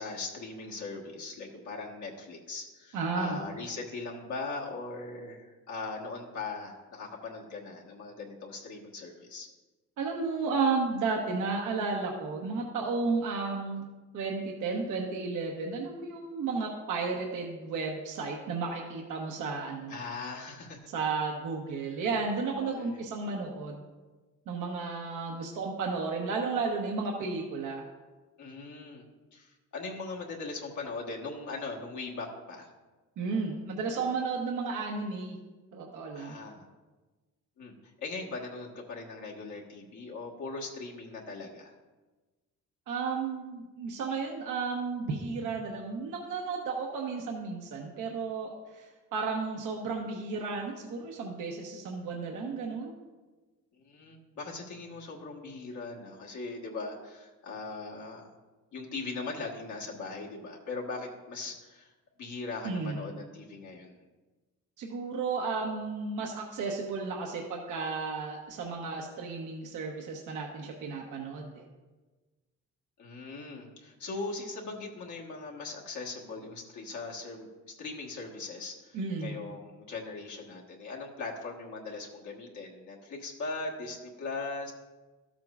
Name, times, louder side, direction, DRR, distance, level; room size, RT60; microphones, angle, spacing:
voice 1, 0.0-9.5 19.9-20.8 22.8-23.0 28.4-29.0 29.3-32.7 36.1-36.7 37.6-37.7 38.0-41.7 53.8-58.3 58.7-61.9 62.2-64.0 73.0-77.5 77.8-84.7, left 3 dB, 75° left, -2 dB, 1.5 m, -40 dB
voice 2, 2.9-3.4 10.0-13.8 14.1-20.0 20.9-23.8 24.5-27.8 33.2-35.4 35.7-36.4 42.9-53.0 62.6-63.1 64.8-71.6 78.9-79.4, right 4 dB, 80° right, 0 dB, 1.0 m, -33 dB
12.5 x 7.4 x 2.4 m, 1.3 s
cardioid pair, 90°, 30 cm